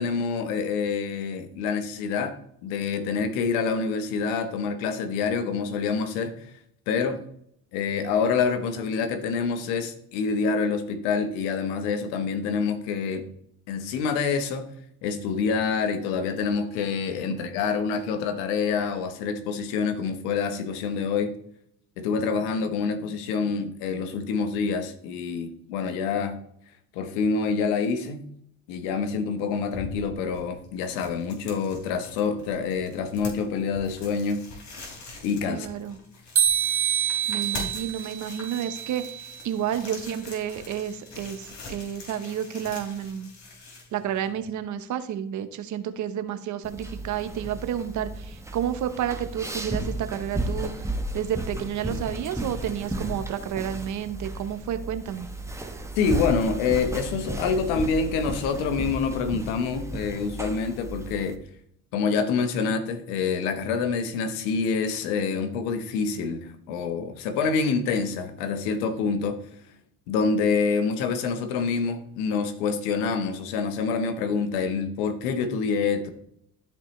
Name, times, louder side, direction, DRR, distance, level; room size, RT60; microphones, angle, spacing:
voice 1, 0.0-2.4 2.6-6.3 6.9-7.2 7.7-13.2 13.7-14.7 15.0-21.3 22.0-26.3 26.9-28.3 28.7-34.4 35.2-35.7 56.0-61.4 61.9-69.4 70.1-76.1, left 5 dB, 85° left, 8 dB, 1.2 m, -26 dB
sound 1, 29.4-44.5, left 3 dB, 55° left, 3.4 m, -43 dB
voice 2, 35.5-36.0 37.3-43.3 43.9-50.9 51.1-55.3, right 9 dB, 55° right, 10 dB, 1.0 m, -31 dB
sound 2, 36.4-39.4, right 9 dB, 35° right, 1.5 m, -27 dB
sound 3, 46.6-61.4, right 1 dB, 10° right, 1.2 m, -34 dB
13.0 x 4.4 x 3.2 m, 0.69 s
supercardioid pair, 80°, 35 cm